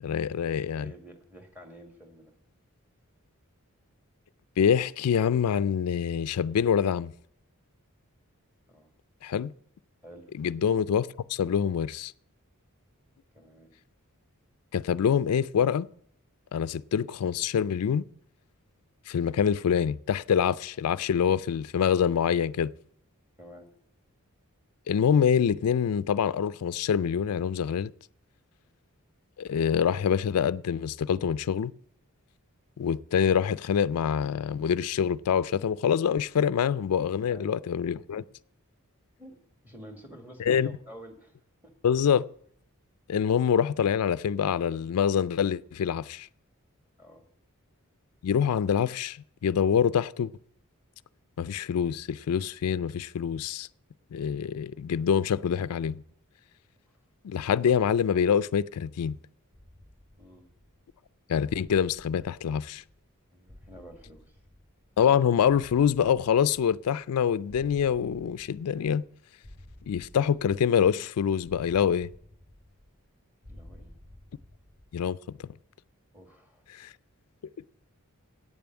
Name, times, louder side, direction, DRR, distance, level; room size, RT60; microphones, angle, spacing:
voice 1, 0.0-0.9 4.6-7.1 9.2-9.5 10.4-12.1 14.7-15.9 16.5-18.0 19.1-22.7 24.9-27.9 29.4-31.7 32.8-38.2 40.4-40.7 41.8-42.2 43.1-46.3 48.2-49.2 49.4-50.3 51.4-53.7 54.1-56.0 57.2-59.2 61.3-62.8 65.0-69.0 69.9-72.1 74.9-75.2 76.7-76.9, left 8 dB, 90° left, 0.4 m, -25 dB
voice 2, 0.7-2.3 8.7-8.9 10.0-10.3 13.3-13.7 23.4-23.7 37.2-37.5 38.1-38.2 39.2-39.4 39.6-41.3 41.6-41.7 47.0-47.2 60.2-60.5 63.3-64.4 73.5-73.9 76.1-76.6, equal, 10° right, 1.8 m, -49 dB
sound 1, 59.5-61.1 61.5-63.2 63.5-65.1 65.5-67.1 67.5-69.1 69.4-71.0 71.4-73.1 73.4-75.1, left 1 dB, 30° right, 1.6 m, -53 dB
8.9 x 7.0 x 8.8 m
head